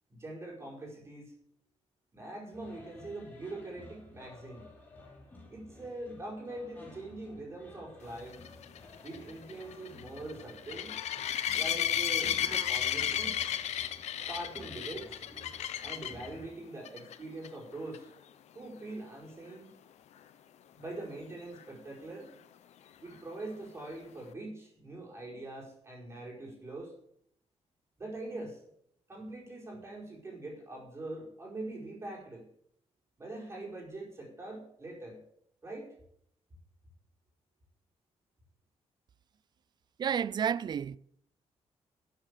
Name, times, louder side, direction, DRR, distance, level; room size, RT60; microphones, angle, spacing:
voice 1, 0.1-1.3 2.1-4.7 5.5-8.4 9.0-11.0 11.5-13.4 14.3-15.2 15.8-18.1 18.5-19.7 20.7-22.3 23.0-26.9 28.0-28.6 29.1-32.5 33.2-35.2 35.6-35.9, right 2 dB, 25° right, 4.8 m, -43 dB
sound 1, 2.5-16.5, left 2 dB, 15° left, 3.2 m, -53 dB
sound 2, 8.3-16.3 16.8-17.2 17.4-17.5 17.9-18.0 21.6-21.7, left 10 dB, 85° left, 0.9 m, -33 dB
voice 2, 40.0-41.0, right 8 dB, 40° right, 0.4 m, -30 dB
12.5 x 8.0 x 8.2 m
wide cardioid pair, 175°, 11 cm